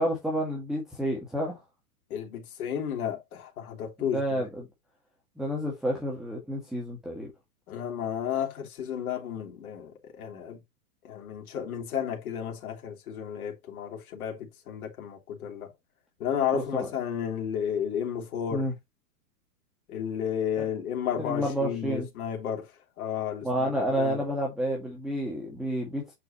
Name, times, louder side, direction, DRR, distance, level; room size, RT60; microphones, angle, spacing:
voice 1, 0.0-1.6 4.0-4.7 5.4-7.3 16.5-16.9 18.5-18.7 20.6-20.7 21.2-22.1 23.4-26.1, equal, ahead, 1.8 m, -30 dB
voice 2, 2.1-4.2 7.7-10.6 11.0-15.7 16.2-18.7 19.9-22.7 23.0-24.2, left 8 dB, 70° left, 3.2 m, -32 dB
7.7 x 5.4 x 2.9 m
hypercardioid pair, 145°, 45 cm